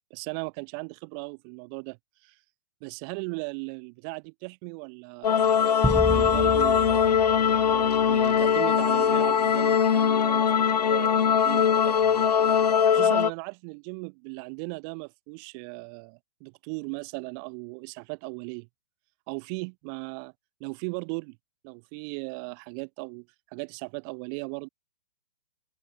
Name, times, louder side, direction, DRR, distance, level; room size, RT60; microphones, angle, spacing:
voice 1, 0.1-2.4 2.8-5.7 6.1-7.2 7.7-12.3 12.9-18.7 19.3-20.3 20.6-21.4 21.6-23.3 23.5-24.7, right 39 dB, 30° right, 2.7 m, -37 dB
sound 1, 5.2-13.3, left 7 dB, 75° left, 0.4 m, -21 dB
sound 2, 5.8-8.4, right 1 dB, ahead, 2.5 m, -31 dB
open air
figure-of-eight pair, 115°, 21 cm